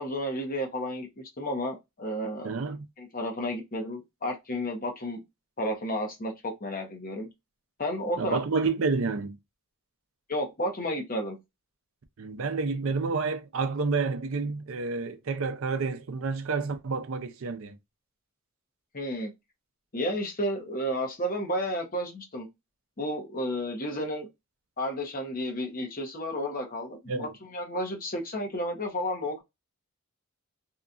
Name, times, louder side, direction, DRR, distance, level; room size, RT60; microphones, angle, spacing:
voice 1, 0.0-2.5 3.0-5.2 5.6-7.3 7.8-8.4 10.3-11.4 18.9-19.3 19.9-22.5 23.0-24.3 24.8-29.4, equal, 40° left, 0.9 m, -32 dB
voice 2, 2.4-2.9 8.2-9.4 12.2-17.8 27.1-27.3, right 4 dB, 65° right, 0.5 m, -29 dB
2.8 x 2.4 x 2.4 m
head